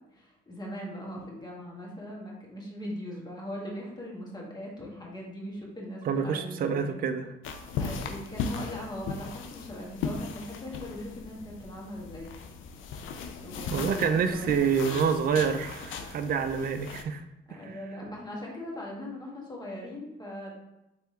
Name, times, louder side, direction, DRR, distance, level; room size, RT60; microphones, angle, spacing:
voice 1, 0.1-7.0 7.8-12.3 13.4-15.4 17.5-20.5, left 1 dB, 20° left, -3 dB, 1.5 m, -40 dB
voice 2, 6.1-7.3 13.7-17.2, right 6 dB, 45° right, 7 dB, 0.4 m, -27 dB
sound 1, 7.4-17.0, left 5 dB, 80° left, 0.5 m, -38 dB
3.6 x 3.3 x 4.3 m, 0.90 s
cardioid pair, 90°, 20 cm